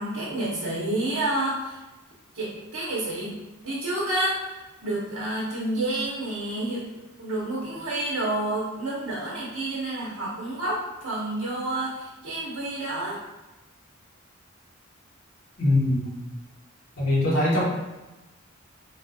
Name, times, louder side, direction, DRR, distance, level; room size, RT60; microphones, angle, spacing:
voice 1, 0.0-1.8 2.3-3.4 3.6-4.6 4.8-6.8 7.2-13.2, right 1 dB, 85° right, -6 dB, 0.8 m, -29 dB
voice 2, 15.6-16.1 17.0-17.6, left 1 dB, 65° left, -6 dB, 1.1 m, -22 dB
3.4 x 2.3 x 2.6 m, 1.1 s
head